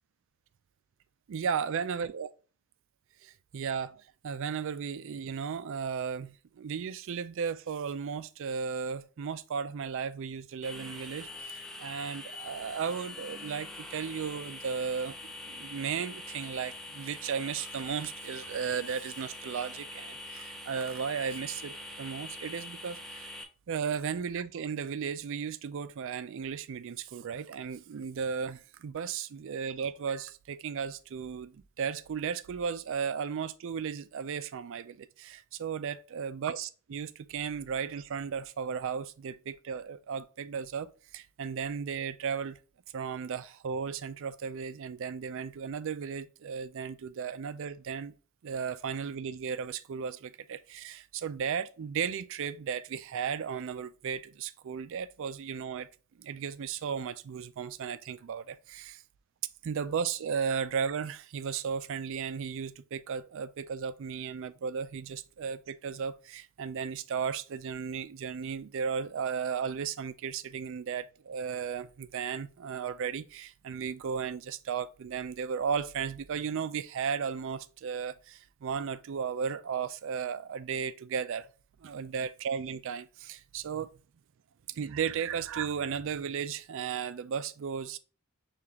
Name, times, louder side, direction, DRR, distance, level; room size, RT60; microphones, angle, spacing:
voice 1, 1.3-2.3 3.2-23.3 23.7-42.6 42.9-48.1 48.4-55.9 56.2-59.0 59.6-81.5 81.8-83.9 84.7-88.0, right 6 dB, 60° right, 0.4 m, -35 dB
sound 1, 10.6-23.4, left 2 dB, ahead, 0.5 m, -44 dB
6.7 x 2.4 x 2.9 m
head